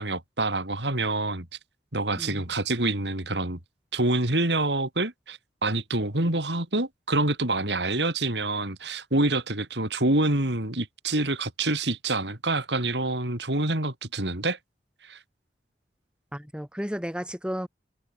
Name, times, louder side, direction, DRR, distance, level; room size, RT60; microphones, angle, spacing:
voice 1, 0.0-1.5 1.9-3.6 3.9-14.6 15.0-15.2, right 2 dB, 80° right, 4.1 m, -26 dB
voice 2, 16.3-17.7, equal, 5° right, 2.5 m, -33 dB
head